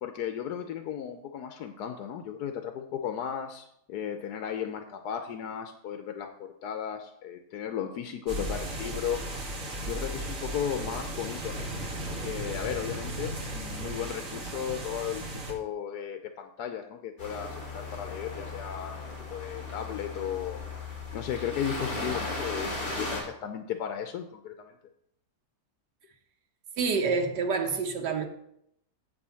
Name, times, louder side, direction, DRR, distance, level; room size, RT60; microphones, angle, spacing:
voice 1, 0.0-9.2 9.8-11.7 12.0-20.6 21.1-24.7, left 9 dB, 75° left, 1.3 m, -35 dB
sound 1, 8.3-15.5, right 1 dB, 55° right, 2.2 m, -36 dB
sound 2, 17.2-23.2, left 3 dB, 35° left, 3.0 m, -36 dB
voice 2, 26.8-28.3, right 4 dB, 90° right, 1.6 m, -27 dB
7.8 x 5.3 x 6.9 m
omnidirectional pair, 1.7 m